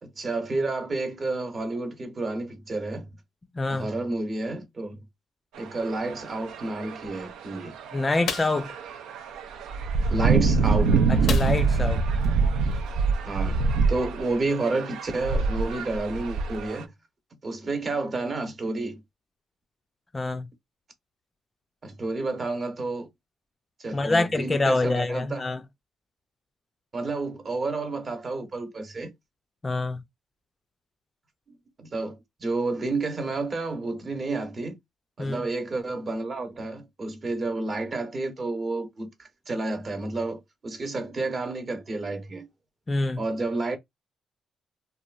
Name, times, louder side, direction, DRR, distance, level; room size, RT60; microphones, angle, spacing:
voice 1, 0.0-3.1 3.7-5.0 5.6-7.8 10.1-11.1 13.3-16.9 17.4-19.0 21.8-23.1 23.8-25.4 26.9-29.1 31.8-34.8 35.2-42.5 43.2-43.8, right 2 dB, 40° right, 0.9 m, -30 dB
voice 2, 3.5-3.9 7.9-8.8 11.1-12.0 20.1-20.5 23.9-25.6 29.6-30.0 35.2-35.5 42.9-43.2, left 2 dB, 25° left, 0.4 m, -26 dB
sound 1, 5.6-16.8, right 4 dB, 85° right, 0.4 m, -25 dB
sound 2, 8.3-8.7 11.3-11.8 12.2-12.3 12.7-12.9, left 7 dB, 75° left, 0.6 m, -32 dB
2.9 x 2.3 x 2.3 m
cardioid pair, 90°, 0 cm